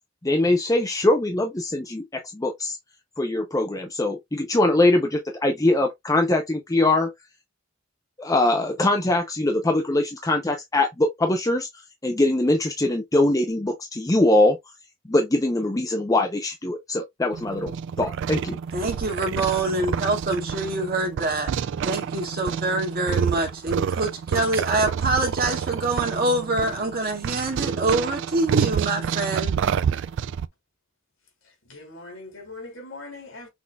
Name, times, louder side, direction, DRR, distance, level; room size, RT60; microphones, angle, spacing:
voice 1, 0.2-2.8 3.2-7.1 8.2-11.7 12.0-14.6 15.1-17.7 18.0-18.6, left 2 dB, 15° left, 0.6 m, -22 dB
sound 1, 17.3-30.5, right 7 dB, 60° right, 0.3 m, -28 dB
voice 2, 18.7-21.5 21.8-29.5, right 2 dB, 45° right, 2.0 m, -25 dB
voice 3, 31.4-33.5, left 2 dB, 80° left, 3.2 m, -41 dB
6.1 x 3.7 x 2.3 m
head